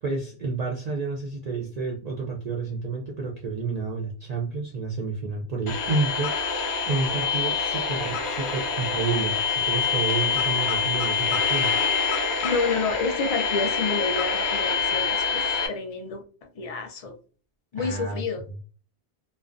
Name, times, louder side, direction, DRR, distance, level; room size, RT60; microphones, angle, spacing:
voice 1, 0.0-6.5 6.9-11.7 17.8-18.2, right 4 dB, 55° right, -1 dB, 0.4 m, -30 dB
sound 1, 5.7-15.7, left 5 dB, 85° left, 0.9 m, -26 dB
voice 2, 12.4-17.2 17.7-18.4, left 4 dB, 50° left, 4 dB, 0.4 m, -29 dB
2.3 x 2.2 x 2.4 m, 0.38 s
omnidirectional pair, 1.1 m